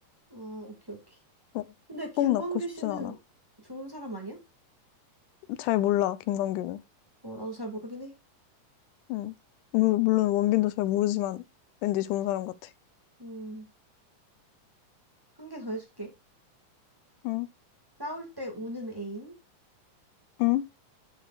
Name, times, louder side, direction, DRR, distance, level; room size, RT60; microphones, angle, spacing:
voice 1, 0.3-1.0 1.9-3.1 3.6-4.4 7.2-8.1 13.2-13.7 15.4-16.1 18.0-19.3, right 1 dB, 10° right, 1.3 m, -37 dB
voice 2, 2.8-3.1 5.5-6.8 9.1-9.3 9.7-11.4 11.8-12.7 17.2-17.5 20.4-20.6, left 15 dB, 80° left, 2.0 m, -26 dB
10.0 x 6.6 x 2.3 m
omnidirectional pair, 3.9 m